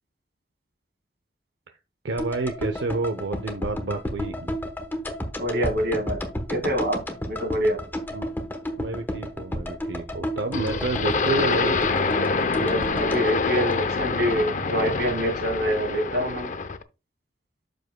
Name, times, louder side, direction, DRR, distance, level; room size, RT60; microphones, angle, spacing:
voice 1, 2.0-4.5 8.1-8.3 8.8-11.8, right 3 dB, 90° right, 7 dB, 0.7 m, -29 dB
sound 1, 2.2-14.4 14.6-14.7, equal, 10° left, 1.0 m, -32 dB
voice 2, 5.4-6.2 6.5-7.0 7.3-7.8 12.6-16.5, equal, 65° right, 5 dB, 2.1 m, -26 dB
sound 2, 10.5-16.8, left 4 dB, 45° left, 0.6 m, -26 dB
12.0 x 5.2 x 2.2 m, 0.28 s
head